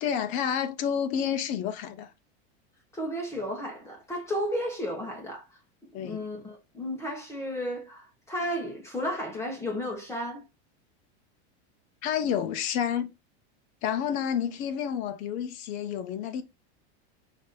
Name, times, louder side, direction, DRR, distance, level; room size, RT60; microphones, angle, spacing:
voice 1, 0.0-2.1 5.9-6.2 12.0-13.1 13.8-16.4, left 8 dB, 25° left, 0.4 m, -29 dB
voice 2, 2.9-5.5 5.9-10.4, equal, 10° left, 0.9 m, -33 dB
4.9 x 2.6 x 3.9 m
supercardioid pair, 170°, 34 cm